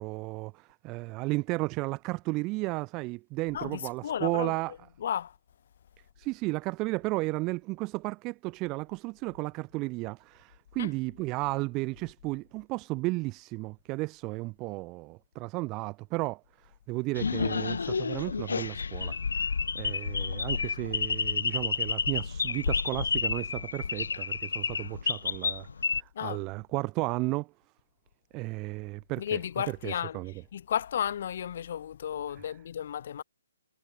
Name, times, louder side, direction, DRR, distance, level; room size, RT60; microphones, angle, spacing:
voice 1, 0.0-4.7 6.2-27.5 28.3-29.4 29.7-30.3, right 23 dB, 15° right, 1.2 m, -34 dB
voice 2, 3.5-4.5 5.0-5.3 10.8-10.9 26.1-26.5 29.2-30.2 30.5-33.2, left 9 dB, 35° left, 1.6 m, -33 dB
sound 1, 17.1-26.0, left 5 dB, 75° left, 0.9 m, -30 dB
hypercardioid pair, 175°, 0 cm